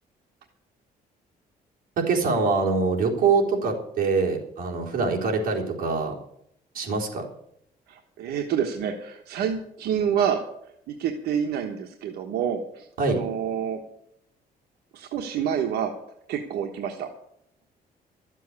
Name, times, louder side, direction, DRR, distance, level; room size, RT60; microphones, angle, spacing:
voice 1, 2.0-6.1 6.7-7.3 13.0-13.2, right 4 dB, 60° right, -1 dB, 3.9 m, -24 dB
voice 2, 7.9-10.4 11.0-13.8 14.9-15.9 16.3-17.1, right 8 dB, 90° right, 4 dB, 1.2 m, -28 dB
13.0 x 7.5 x 9.7 m, 0.75 s
cardioid pair, 125°, 16 cm